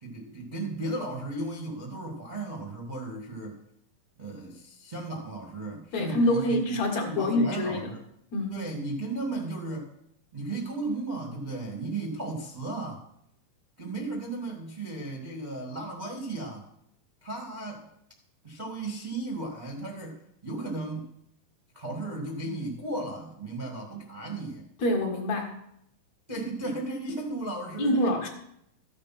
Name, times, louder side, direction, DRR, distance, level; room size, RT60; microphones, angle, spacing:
voice 1, 0.0-3.6 4.2-6.8 7.0-8.0 8.5-9.9 10.3-13.0 13.8-16.6 17.2-17.8 18.4-21.1 21.7-24.7 26.3-28.1, right 2 dB, 30° right, -1 dB, 0.8 m, -35 dB
voice 2, 5.9-7.9 8.3-8.6 24.8-25.5 27.8-28.3, left 1 dB, 55° left, 1 dB, 2.7 m, -26 dB
14.0 x 8.5 x 5.8 m, 0.76 s
omnidirectional pair, 4.2 m